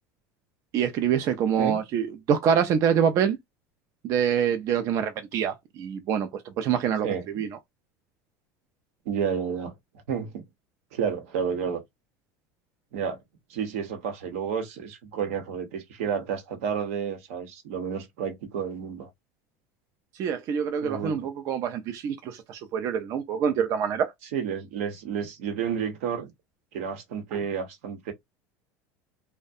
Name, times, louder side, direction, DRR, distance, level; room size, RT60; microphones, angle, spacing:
voice 1, 0.7-3.4 4.0-6.3 6.6-7.5 20.2-24.1, right 8 dB, 45° right, 0.4 m, -25 dB
voice 2, 9.1-9.7 10.1-10.5 10.9-11.8 12.9-13.2 13.5-19.1 20.8-21.3 24.3-26.3 26.7-28.1, right 7 dB, 80° right, 0.8 m, -31 dB
2.3 x 2.1 x 2.6 m
supercardioid pair, 130°, 8 cm